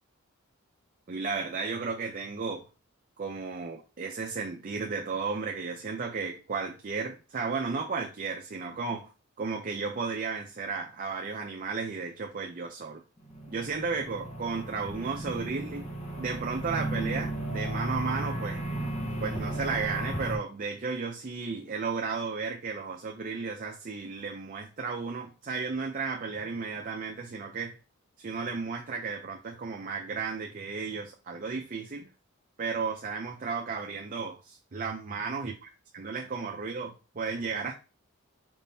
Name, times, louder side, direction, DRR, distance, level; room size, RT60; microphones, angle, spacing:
voice 1, 1.1-2.7 3.2-9.1 9.4-13.0 13.5-15.9 16.2-18.6 19.2-27.8 28.2-32.1 32.6-35.5 35.9-37.7, right 4 dB, 40° right, 0.5 m, -34 dB
sound 1, 13.2-20.4, right 1 dB, 35° left, 1.1 m, -34 dB
5.0 x 3.7 x 2.7 m
head